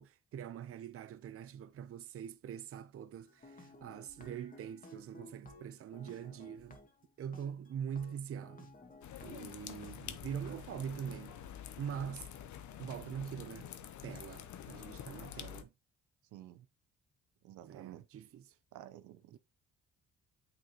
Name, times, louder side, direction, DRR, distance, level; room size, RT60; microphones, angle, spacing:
voice 1, 0.0-6.8 7.2-8.7 9.2-11.4 11.8-12.3 12.8-13.7 14.0-15.7 17.6-18.5 19.3-19.4, right 8 dB, 50° right, 0.6 m, -43 dB
sound 1, 3.2-9.9 10.4-10.5 11.1-11.2, left 2 dB, 25° left, 1.7 m, -57 dB
sound 2, 9.0-15.6, left 10 dB, 70° left, 0.8 m, -48 dB
voice 2, 16.3-16.7 17.4-18.1 18.7-19.4, right 13 dB, 90° right, 0.7 m, -51 dB
9.0 x 3.9 x 2.9 m
cardioid pair, 90°, 30 cm